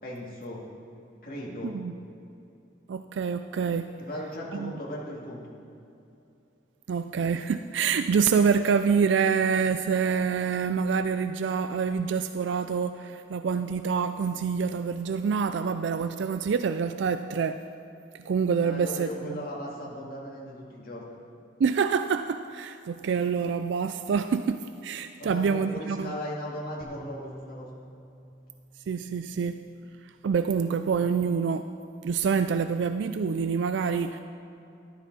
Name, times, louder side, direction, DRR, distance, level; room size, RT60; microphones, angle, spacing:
voice 1, 0.0-0.6 1.2-1.8 4.0-5.4 18.6-21.1 25.2-27.7, left 1 dB, 50° left, -5 dB, 2.5 m, -37 dB
voice 2, 1.6-2.0 2.9-3.9 4.5-4.7 6.9-17.6 18.3-19.4 21.6-26.1 28.9-29.6 30.0-31.7 32.0-34.2, right 6 dB, 75° right, 10 dB, 0.3 m, -26 dB
sound 1, 26.8-30.1, equal, 5° right, 1.5 m, -49 dB
14.0 x 12.0 x 4.1 m, 2.7 s
head